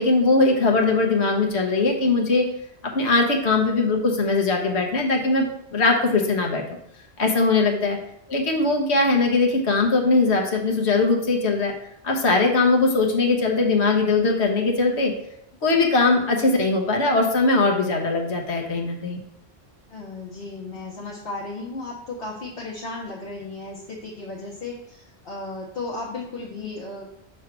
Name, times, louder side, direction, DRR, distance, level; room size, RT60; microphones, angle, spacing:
voice 1, 0.0-2.4 2.9-5.5 5.7-6.8 7.2-8.0 8.3-11.7 12.0-15.1 15.6-19.2, left 3 dB, 75° left, 1 dB, 1.3 m, -20 dB
voice 2, 7.5-7.9 19.9-27.1, left 3 dB, 60° left, -5 dB, 1.2 m, -35 dB
6.2 x 3.2 x 5.9 m, 0.75 s
omnidirectional pair, 1.1 m